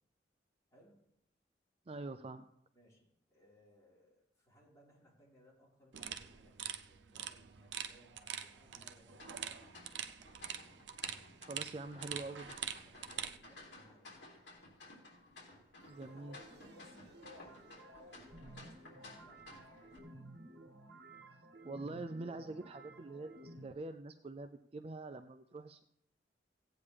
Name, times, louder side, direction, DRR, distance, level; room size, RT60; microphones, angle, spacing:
voice 1, 0.7-1.0 2.7-9.8 12.6-14.1 16.1-20.2, equal, 20° left, -6 dB, 4.4 m, -65 dB
voice 2, 1.9-2.5 11.5-12.6 15.9-16.4 21.6-25.8, right 2 dB, 35° right, 9 dB, 0.4 m, -45 dB
sound 1, 5.9-13.4, right 9 dB, 90° right, 0.6 m, -44 dB
sound 2, 9.1-20.0, left 2 dB, 80° left, 3.5 m, -56 dB
sound 3, 15.8-23.7, right 1 dB, 65° right, 1.0 m, -55 dB
17.0 x 8.5 x 3.4 m, 0.75 s
head